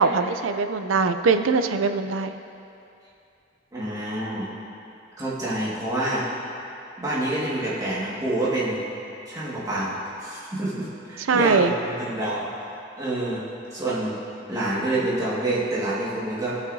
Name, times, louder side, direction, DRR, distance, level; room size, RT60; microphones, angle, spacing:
voice 1, 0.0-2.3 11.3-11.7, right 4 dB, 90° right, 9 dB, 0.5 m, -21 dB
voice 2, 3.7-4.5 5.2-6.3 7.0-8.9 9.3-12.5 13.0-13.4 13.7-14.2 14.5-16.6, right 1 dB, 20° right, -8 dB, 1.8 m, -27 dB
18.5 x 6.4 x 2.7 m, 2.7 s
head